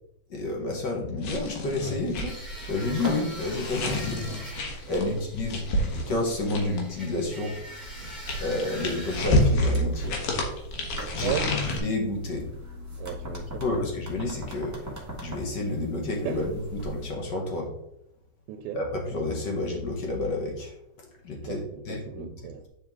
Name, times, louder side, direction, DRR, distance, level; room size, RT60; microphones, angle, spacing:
voice 1, 0.3-2.4 2.7-4.2 4.9-5.7 6.1-7.6 8.4-10.2 11.1-11.3 11.8-12.5 13.6-14.8 15.2-17.7 18.7-20.8 21.2-22.2, left 2 dB, 55° left, 1.2 m, -30 dB
sound 1, 1.2-7.0 7.8-11.8, left 1 dB, 85° left, 3.0 m, -29 dB
sound 2, 1.3-17.1, equal, 25° right, 0.3 m, -42 dB
sound 3, 2.2-9.2, equal, 15° left, 2.5 m, -44 dB
voice 2, 11.2-11.5 13.0-13.7 16.2-16.4 18.5-18.8 21.5-22.6, right 10 dB, 85° right, 2.0 m, -35 dB
8.9 x 5.1 x 3.6 m
omnidirectional pair, 3.6 m